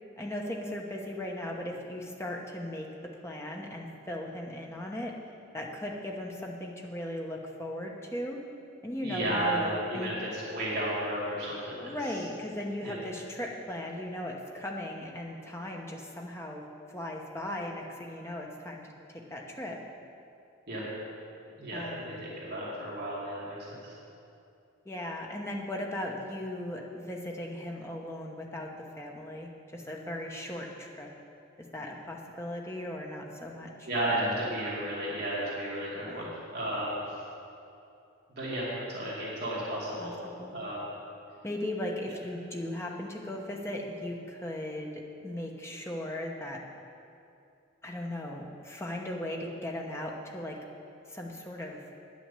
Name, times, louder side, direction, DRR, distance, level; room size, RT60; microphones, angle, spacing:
voice 1, 0.2-2.9 3.2-5.2 5.5-8.4 8.8-10.2 11.8-16.6 16.9-19.8 21.7-22.2 24.8-31.1 31.7-33.9 36.0-36.3 40.0-40.5 41.4-46.6 47.8-50.6 51.1-51.8, left 1 dB, 15° left, -1 dB, 1.0 m, -37 dB
voice 2, 9.0-11.9 12.8-13.0 20.7-20.8 21.6-24.0 33.9-37.0 38.3-40.1 40.5-40.9, right 1 dB, 50° right, -7 dB, 2.3 m, -33 dB
9.8 x 6.3 x 8.2 m, 2.6 s
head